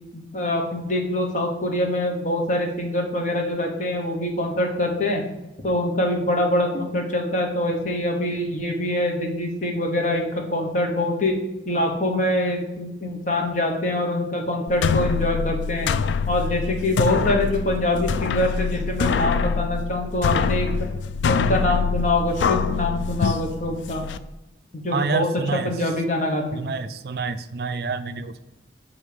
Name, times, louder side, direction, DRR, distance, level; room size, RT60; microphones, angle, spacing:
voice 1, 0.1-5.2 5.6-11.4 11.6-15.9 16.3-20.7 21.3-24.0 24.7-26.6, left 1 dB, 45° left, 2 dB, 1.1 m, -24 dB
sound 1, 14.7-24.2, left 5 dB, 85° left, 0.3 m, -25 dB
voice 2, 24.9-25.7 26.5-28.4, right 4 dB, 55° right, 11 dB, 0.3 m, -28 dB
6.7 x 3.6 x 5.1 m, 0.98 s
head